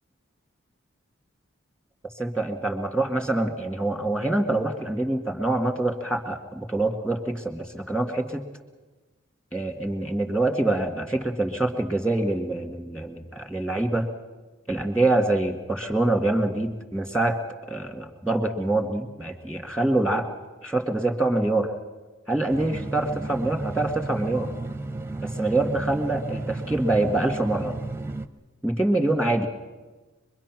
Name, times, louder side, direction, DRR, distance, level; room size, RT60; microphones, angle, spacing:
voice 1, 2.2-8.4 9.5-14.1 14.7-17.4 17.7-20.3 20.6-21.7 22.3-24.5 25.2-27.7 28.6-29.5, right 2 dB, 5° left, 5 dB, 1.9 m, -25 dB
sound 1, 22.5-28.3, right 2 dB, 10° right, 0.7 m, -33 dB
25.0 x 22.0 x 6.1 m, 1.2 s
head